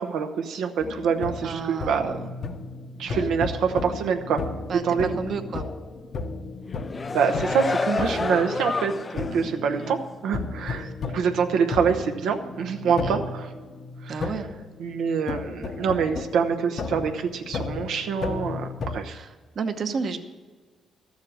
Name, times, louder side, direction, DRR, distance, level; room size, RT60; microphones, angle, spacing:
voice 1, 0.0-2.2 3.0-4.4 4.8-5.1 7.1-10.0 10.2-13.5 14.0-14.3 14.8-19.2, right 6 dB, 85° right, 5 dB, 0.8 m, -25 dB
sound 1, 0.8-19.0, left 4 dB, 55° left, 0.9 m, -34 dB
voice 2, 1.4-2.3 3.1-3.3 4.7-5.7 8.1-8.4 9.3-9.9 10.8-10.9 12.8-13.2 14.1-14.5 19.1-20.2, right 5 dB, 50° right, 7 dB, 1.0 m, -33 dB
sound 2, 6.7-9.4 9.8-9.9, left 4 dB, 30° left, 0.3 m, -29 dB
13.0 x 7.4 x 7.7 m, 1.4 s
cardioid pair, 110°, 0 cm